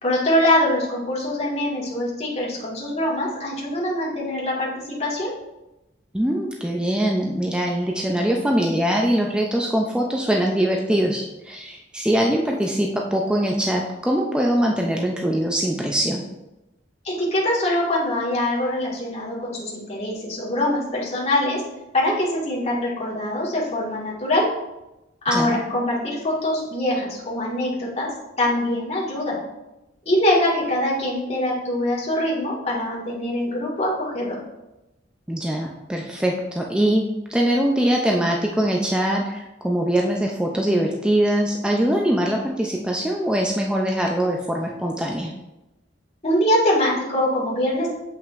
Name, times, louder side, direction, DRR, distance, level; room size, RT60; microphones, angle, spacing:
voice 1, 0.0-5.3 17.0-21.6 21.9-24.5 25.2-28.1 28.4-29.4 30.1-34.4 46.2-47.9, left 1 dB, 35° left, -6 dB, 1.9 m, -23 dB
voice 2, 6.1-16.2 25.3-25.6 35.3-45.3, right 1 dB, 5° right, 0 dB, 0.4 m, -22 dB
7.7 x 5.5 x 2.5 m, 0.97 s
head